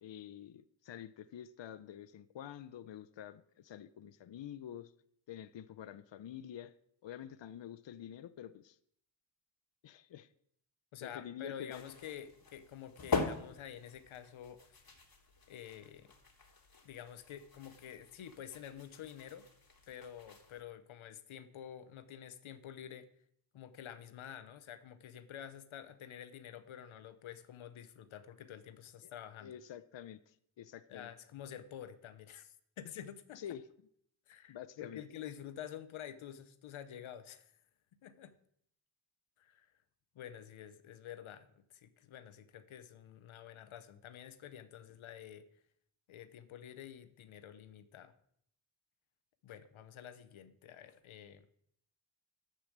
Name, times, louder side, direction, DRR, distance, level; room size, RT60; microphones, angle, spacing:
voice 1, 0.0-4.9 5.3-6.7 7.0-8.8 9.8-10.3 11.0-11.8 29.0-29.1 29.4-31.1 33.4-33.6 34.5-35.0, left 10 dB, 65° left, 0.8 m, -48 dB
voice 2, 10.9-14.8 15.5-16.1 16.8-19.5 19.9-23.1 23.5-29.5 30.9-33.4 34.3-37.5 38.0-38.3 39.4-39.7 40.1-45.4 46.1-48.1 49.4-51.5, left 9 dB, 90° left, 0.9 m, -49 dB
sound 1, 11.7-20.6, left 4 dB, 45° left, 2.9 m, -43 dB
10.0 x 7.6 x 8.0 m
cardioid pair, 45°, 47 cm